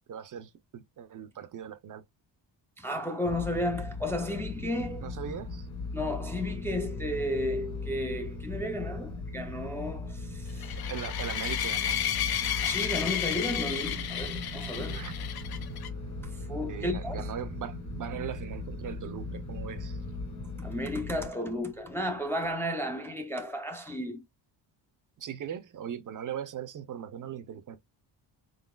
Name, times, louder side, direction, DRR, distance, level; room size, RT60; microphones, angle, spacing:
voice 1, 0.1-2.0 5.0-5.7 10.9-12.0 14.9-15.2 16.7-20.0 25.2-27.8, right 9 dB, 45° right, 0.5 m, -39 dB
voice 2, 2.8-5.1 5.9-10.8 12.6-15.0 16.2-17.2 20.6-24.2, left 1 dB, 5° left, 0.4 m, -33 dB
sound 1, 3.2-21.3, left 3 dB, 40° left, 1.1 m, -38 dB
sound 2, 10.6-15.9, left 10 dB, 55° left, 0.6 m, -32 dB
sound 3, 13.6-22.6, right 6 dB, 75° right, 0.8 m, -48 dB
4.2 x 3.9 x 2.2 m
cardioid pair, 155°, 44 cm